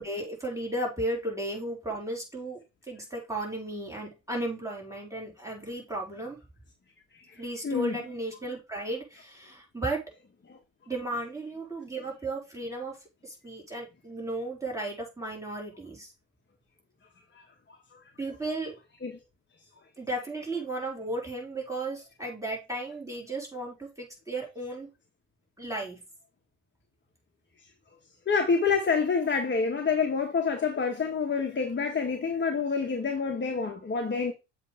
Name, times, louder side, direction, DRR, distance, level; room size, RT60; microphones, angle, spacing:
voice 1, 0.0-2.6 2.9-6.4 7.4-10.0 10.9-13.0 13.2-16.1 18.2-18.8 20.0-24.9 25.6-26.0, right 2 dB, 5° right, 4.1 m, -34 dB
voice 2, 7.6-8.0 10.5-10.6 19.0-19.1 28.3-34.3, left 5 dB, 25° left, 1.3 m, -27 dB
7.3 x 3.4 x 5.0 m
hypercardioid pair, 65°, 45 cm